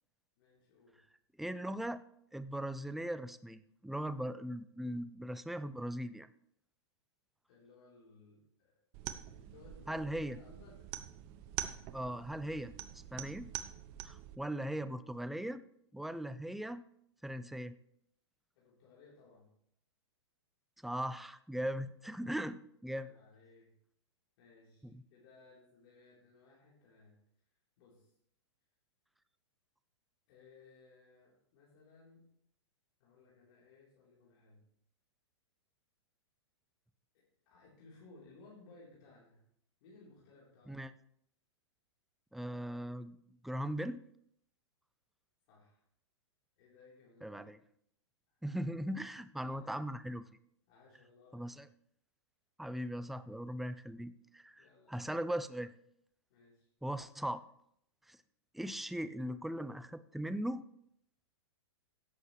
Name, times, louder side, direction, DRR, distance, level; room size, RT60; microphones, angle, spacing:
voice 1, 0.4-1.0 7.5-8.7 9.3-10.9 18.6-19.5 22.1-22.4 23.0-23.7 24.4-27.2 27.8-28.1 30.3-32.3 33.0-34.6 37.1-39.4 39.8-40.8 45.5-45.8 46.6-47.5 49.4-49.8 50.7-51.6 54.6-55.1 56.3-56.7, left 3 dB, 55° left, -6 dB, 3.6 m, -61 dB
voice 2, 1.4-2.0 2.3-6.3 9.9-10.4 11.9-13.5 14.0-15.6 15.9-16.8 17.2-17.8 20.8-23.1 24.8-25.0 40.7-40.9 42.3-43.2 43.4-44.0 47.2-47.6 48.4-50.2 51.3-51.7 52.6-55.7 56.8-57.4 58.1-58.2 58.5-60.6, equal, ahead, 13 dB, 0.4 m, -39 dB
sound 1, 8.9-14.3, right 12 dB, 40° right, 0.8 m, -45 dB
16.5 x 7.5 x 3.2 m, 0.70 s
hypercardioid pair, 120°, 15 cm